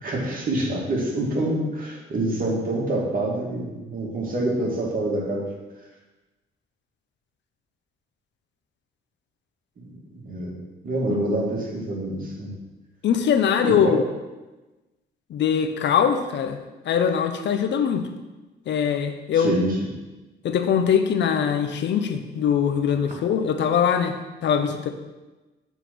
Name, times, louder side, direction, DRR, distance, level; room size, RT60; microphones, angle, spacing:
voice 1, 0.0-5.5 9.8-9.9 10.2-10.6 10.8-12.6 13.6-14.0 19.4-19.7, right 1 dB, 45° right, -3 dB, 2.4 m, -26 dB
voice 2, 13.0-14.0 15.3-16.6 16.8-18.1 18.7-19.6 20.4-24.9, left 7 dB, 65° left, 7 dB, 0.8 m, -22 dB
7.2 x 4.0 x 6.0 m, 1.1 s
cardioid pair, 90°, 20 cm